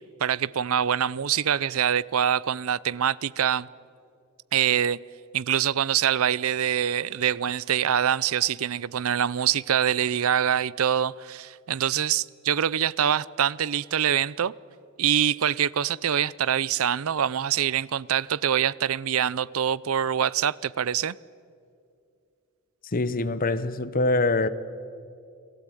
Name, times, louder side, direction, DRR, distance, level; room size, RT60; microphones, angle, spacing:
voice 1, 0.2-3.7 4.5-5.0 5.3-14.5 15.0-21.2, right 9 dB, 65° right, 0.5 m, -24 dB
voice 2, 22.9-24.5, left 2 dB, 40° left, 1.0 m, -24 dB
29.5 x 19.0 x 9.1 m
head